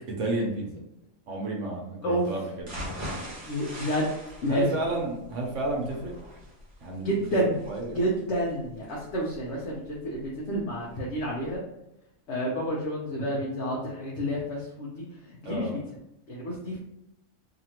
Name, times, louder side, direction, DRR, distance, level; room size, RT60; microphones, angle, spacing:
voice 1, 0.2-0.8 1.3-2.7 4.5-6.1 6.8-7.2 7.7-8.0 15.4-15.7, right 2 dB, 70° right, -1 dB, 1.1 m, -31 dB
sound 1, 2.6-10.6 11.0-11.1 11.5-11.6, equal, 45° right, 1.2 m, -41 dB
voice 2, 3.5-4.1 4.4-4.7 7.0-11.6 12.3-15.0 15.4-15.8 16.3-16.8, equal, 65° left, -4 dB, 0.9 m, -29 dB
2.8 x 2.5 x 2.8 m, 0.85 s
omnidirectional pair, 1.4 m